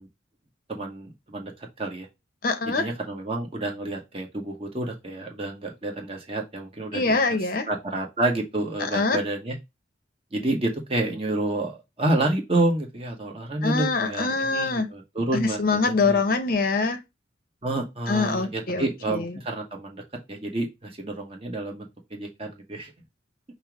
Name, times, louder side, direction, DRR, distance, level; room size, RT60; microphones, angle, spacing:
voice 1, 0.7-1.5 1.8-2.1 2.6-7.2 7.7-9.6 10.3-16.2 17.6-20.0 20.3-22.9, right 2 dB, 30° right, 1.0 m, -29 dB
voice 2, 2.4-2.8 6.9-7.7 8.9-9.2 13.6-14.9 15.3-17.0 18.1-19.3, left 3 dB, 50° left, 0.6 m, -24 dB
5.4 x 2.0 x 4.6 m
head